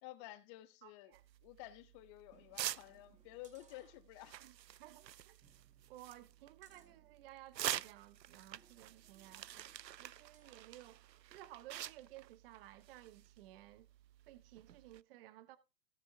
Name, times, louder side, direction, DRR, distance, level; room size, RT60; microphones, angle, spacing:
voice 1, 0.0-1.1 1.4-4.4, left 15 dB, 20° left, 0.6 m, -52 dB
voice 2, 0.8-1.2 4.3-4.5 4.8-5.4 5.9-9.7 10.0-11.0 11.3-13.9 14.3-15.6, right 15 dB, 35° right, 0.9 m, -56 dB
sound 1, 1.1-15.0, right 11 dB, 85° right, 0.6 m, -48 dB
sound 2, 2.3-4.5 4.9-5.0 5.4-7.9 8.6-10.8 11.2-11.3, right 5 dB, 15° right, 2.0 m, -71 dB
17.5 x 6.2 x 2.7 m
figure-of-eight pair, 120°, 49 cm